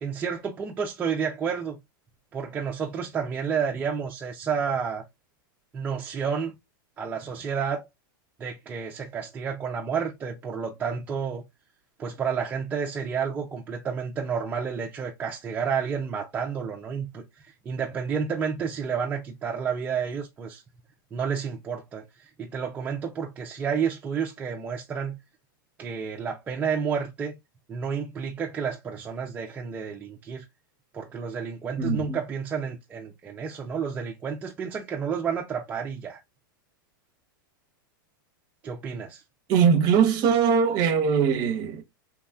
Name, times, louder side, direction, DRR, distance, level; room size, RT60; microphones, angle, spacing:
voice 1, 0.0-1.8 2.3-5.0 5.7-6.5 7.0-7.9 8.4-11.4 12.0-20.6 21.1-25.2 25.8-27.4 27.7-30.4 30.9-36.2 38.6-39.2, right 6 dB, 15° right, 0.4 m, -30 dB
voice 2, 31.8-32.2 39.5-41.8, right 7 dB, 35° right, 0.8 m, -21 dB
3.0 x 2.3 x 2.3 m
supercardioid pair, 145°, 12 cm